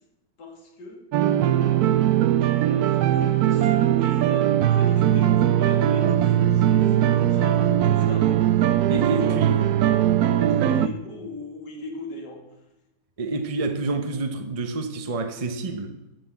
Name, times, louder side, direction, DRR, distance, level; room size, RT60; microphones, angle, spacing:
voice 1, 0.4-1.0 1.5-2.2 2.6-9.7 10.2-12.4, left 3 dB, 65° left, 2.8 m, -39 dB
sound 1, 1.1-10.9, right 11 dB, 70° right, 1.0 m, -20 dB
voice 2, 8.9-9.6 10.6-10.8 13.2-16.0, right 3 dB, 40° right, 0.5 m, -28 dB
13.5 x 5.9 x 8.0 m
omnidirectional pair, 2.0 m